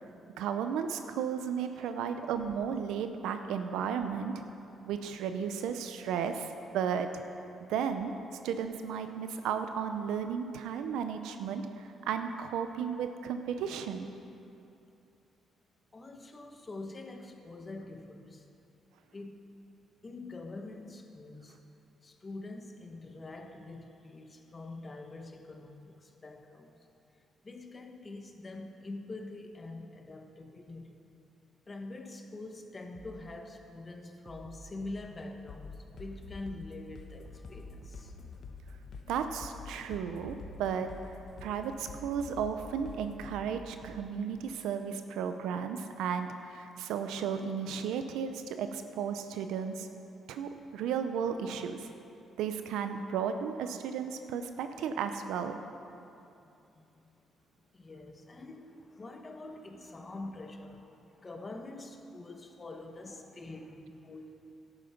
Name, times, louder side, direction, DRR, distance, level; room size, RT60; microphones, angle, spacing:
voice 1, 0.4-4.4 4.8-7.1 7.7-8.1 8.4-14.1 39.1-49.9 50.3-51.9 52.4-55.6, right 7 dB, 90° right, 8 dB, 0.6 m, -34 dB
voice 2, 15.9-18.5 19.1-19.5 20.0-21.6 22.0-26.9 27.4-31.0 31.7-38.1 52.3-52.4 56.4-57.2 57.7-64.3, left 2 dB, 30° left, 5 dB, 1.1 m, -45 dB
sound 1, 32.9-33.3 34.3-35.1 35.9-36.3 37.3-38.2 38.9-39.3 40.3-41.2 41.9-42.3 43.3-44.2, right 3 dB, 50° right, 0.9 m, -51 dB
sound 2, 35.5-43.3, left 4 dB, 55° left, 1.2 m, -47 dB
11.5 x 8.9 x 5.9 m, 2.7 s
cardioid pair, 90°, 0 cm